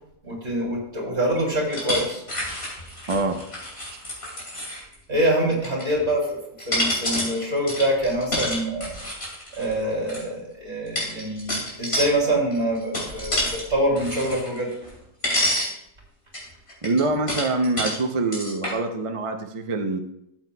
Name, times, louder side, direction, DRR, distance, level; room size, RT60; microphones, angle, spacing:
voice 1, 0.2-2.2 5.1-6.4 6.7-8.9 9.5-14.7, right 1 dB, 55° right, -2 dB, 3.1 m, -25 dB
sound 1, 1.7-4.9 5.5-6.2 6.6-10.2 11.0-12.1 12.5-13.6 14.0-15.0 15.2-15.7 16.3-18.0 18.3-18.7, left 1 dB, 50° left, 3.6 m, -28 dB
voice 2, 3.1-3.4 3.9-4.0 16.8-20.0, right 3 dB, 35° right, 5 dB, 0.5 m, -25 dB
13.0 x 7.9 x 2.2 m, 0.79 s
omnidirectional pair, 1.4 m